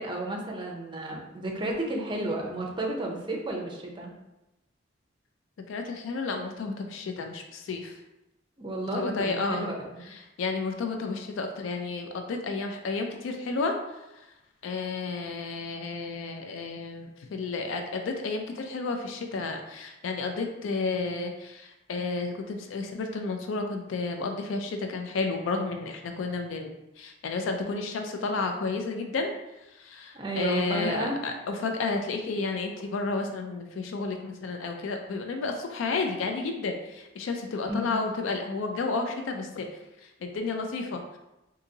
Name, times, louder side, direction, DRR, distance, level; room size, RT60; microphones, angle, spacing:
voice 1, 0.0-4.1 8.6-10.1 30.1-31.2 37.6-37.9, right 1 dB, 25° right, 0 dB, 0.5 m, -32 dB
voice 2, 5.7-8.0 8.9-9.7 10.1-14.2 14.6-29.3 29.7-39.7 40.0-41.2, left 3 dB, 80° left, 4 dB, 0.4 m, -32 dB
3.8 x 2.6 x 2.7 m, 0.95 s
head